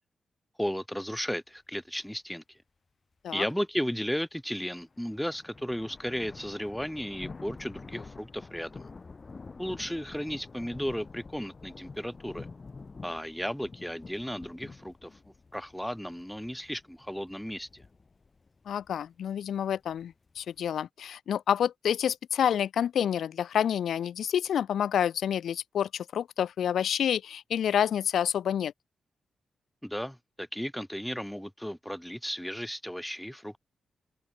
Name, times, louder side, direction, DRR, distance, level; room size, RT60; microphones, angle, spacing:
voice 1, 0.6-2.4 3.3-8.9 9.6-12.5 13.0-17.8 29.8-33.6, equal, ahead, 0.4 m, -35 dB
sound 1, 4.8-20.7, left 4 dB, 25° left, 1.3 m, -48 dB
voice 2, 18.7-28.7, left 9 dB, 80° left, 0.4 m, -28 dB
open air
wide cardioid pair, 165°, 0 cm